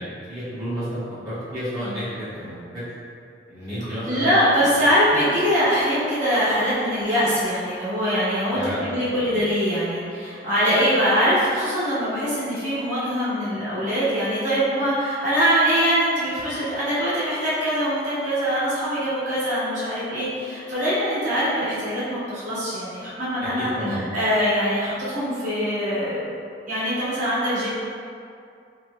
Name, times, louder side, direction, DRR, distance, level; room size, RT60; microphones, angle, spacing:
voice 1, 0.0-2.0 2.3-2.8 3.5-4.3 8.5-9.3 23.6-24.0, equal, 20° right, -15 dB, 0.7 m, -31 dB
voice 2, 4.0-26.3 26.6-27.7, equal, 45° right, -11 dB, 1.1 m, -23 dB
3.2 x 2.9 x 2.2 m, 2.4 s
head